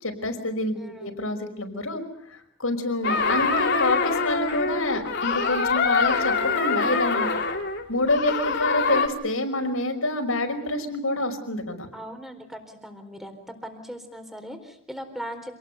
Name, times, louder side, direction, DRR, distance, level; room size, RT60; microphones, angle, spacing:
voice 1, 0.0-2.0 2.3-7.3 7.9-11.9, left 1 dB, 80° left, 5 dB, 5.5 m, -27 dB
voice 2, 0.8-1.1 11.9-15.5, equal, ahead, 6 dB, 4.1 m, -39 dB
sound 1, 3.0-9.1, left 4 dB, 55° left, 3.1 m, -24 dB
27.5 x 19.5 x 8.2 m, 0.76 s
head